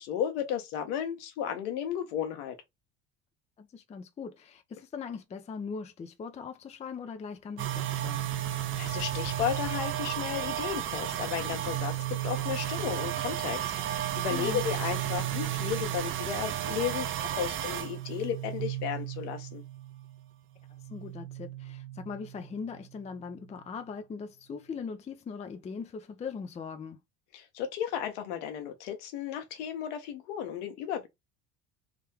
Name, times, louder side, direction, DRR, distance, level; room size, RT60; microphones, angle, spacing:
voice 1, 0.0-2.6 8.5-19.6 27.3-31.1, left 9 dB, 60° left, 1.2 m, -34 dB
voice 2, 3.6-8.2 14.3-14.6 20.9-27.0, left 5 dB, 15° left, 0.6 m, -40 dB
sound 1, 7.6-20.3 20.6-23.0, right 12 dB, 35° right, 0.6 m, -33 dB
3.6 x 3.3 x 3.2 m
figure-of-eight pair, 65°, 39 cm